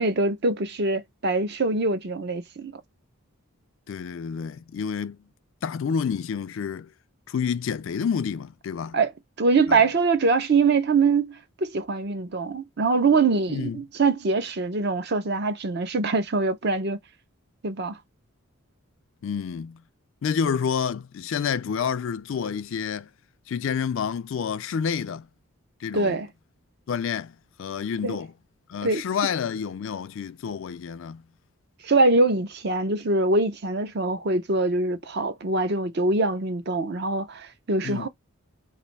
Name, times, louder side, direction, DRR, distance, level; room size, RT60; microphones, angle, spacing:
voice 1, 0.0-2.8 8.9-9.1 9.4-17.0 17.6-18.0 25.9-26.3 28.0-28.2 28.8-29.0 31.8-38.1, right 3 dB, 45° right, 0.6 m, -23 dB
voice 2, 3.9-5.2 5.6-6.9 7.3-9.0 9.7-9.8 13.5-13.8 19.2-19.8 20.2-23.1 23.5-25.3 25.8-26.2 26.9-28.3 28.7-31.2 37.8-38.1, left 6 dB, 60° left, 0.3 m, -29 dB
3.3 x 2.6 x 4.0 m
head